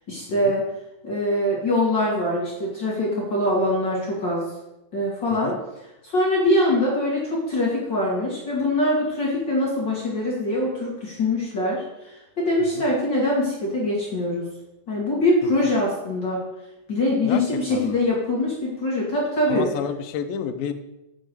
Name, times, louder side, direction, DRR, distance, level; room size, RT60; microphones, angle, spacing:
voice 1, 0.1-0.7 1.0-4.4 4.9-5.6 6.0-14.5 14.9-16.4 16.9-19.7, left 1 dB, 35° left, -4 dB, 2.6 m, -23 dB
voice 2, 19.5-20.7, left 8 dB, 85° left, 7 dB, 2.6 m, -30 dB
7.4 x 6.9 x 7.9 m, 0.92 s
omnidirectional pair, 4.1 m